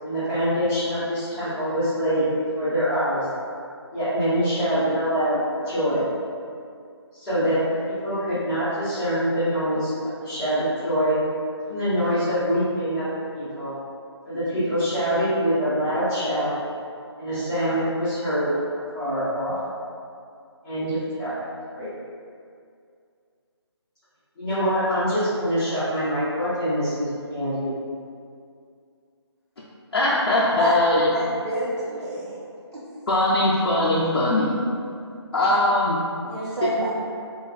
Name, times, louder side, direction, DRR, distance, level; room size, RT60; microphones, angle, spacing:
voice 1, 0.0-3.2 3.9-6.0 7.1-11.2 11.7-13.0 13.3-13.7 14.2-16.5 17.2-18.5 18.9-19.5 20.6-21.3 21.7-21.9 24.4-27.7, equal, 5° left, -20 dB, 0.5 m, -24 dB
voice 2, 29.9-31.1 33.1-34.6 35.3-35.9, left 1 dB, 60° left, -7 dB, 0.4 m, -20 dB
voice 3, 31.1-32.4 32.7-32.8 35.3-35.6 36.2-36.9, right 2 dB, 75° right, -9 dB, 0.6 m, -29 dB
2.4 x 2.3 x 2.4 m, 2.3 s
figure-of-eight pair, 160°, 15 cm